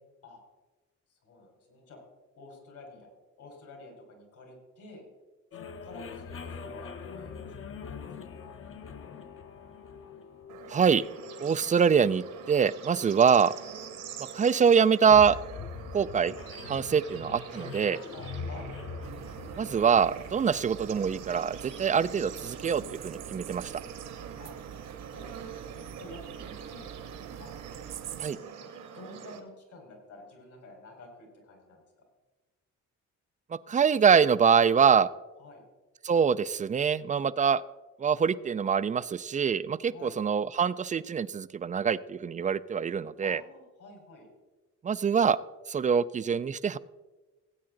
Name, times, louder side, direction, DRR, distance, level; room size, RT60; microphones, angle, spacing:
voice 1, 1.1-2.0 2.3-3.1 3.4-5.1 5.5-7.5 7.8-8.4 18.1-18.7 24.4-24.5 25.1-25.4 25.7-27.0 27.4-27.5 28.1-31.8 35.4-35.6 39.9-40.2 43.2-44.3, left 2 dB, 75° left, 1 dB, 4.4 m, -50 dB
sound 1, 5.5-20.9, left 5 dB, 45° left, 0.9 m, -44 dB
Bird / Insect / Frog, 10.5-29.4, right 7 dB, 80° right, 1.8 m, -45 dB
voice 2, 10.7-11.0 11.4-13.5 14.3-15.4 15.9-16.3 16.7-18.0 19.6-23.7 28.2-28.4 33.5-35.1 36.0-37.6 38.0-43.4 44.8-45.4 45.7-46.8, right 6 dB, 25° right, 16 dB, 0.4 m, -24 dB
sound 2, 19.0-28.3, right 9 dB, 60° right, 0.7 m, -44 dB
17.5 x 8.6 x 3.8 m, 1.2 s
cardioid pair, 90°, 30 cm